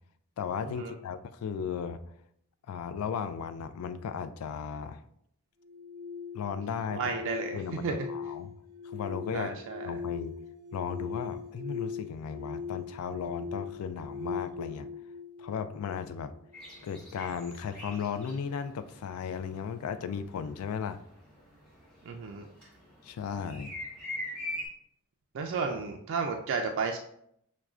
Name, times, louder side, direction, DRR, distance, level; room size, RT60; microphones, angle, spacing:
voice 1, 0.4-2.0 2.7-5.0 6.3-7.1 7.5-7.8 8.1-8.5 8.8-9.5 9.8-10.3 10.7-14.9 15.4-16.3 16.8-21.0 23.0-23.7, left 7 dB, 80° left, 11 dB, 0.3 m, -35 dB
sound 1, 5.6-16.6, left 5 dB, 15° right, 0.6 m, -40 dB
voice 2, 6.9-8.0 9.3-9.9 22.1-22.5 25.3-27.0, right 5 dB, 60° right, 3 dB, 0.3 m, -33 dB
sound 2, 16.5-24.7, left 1 dB, 5° left, 1.2 m, -43 dB
5.9 x 2.2 x 2.4 m, 0.71 s
head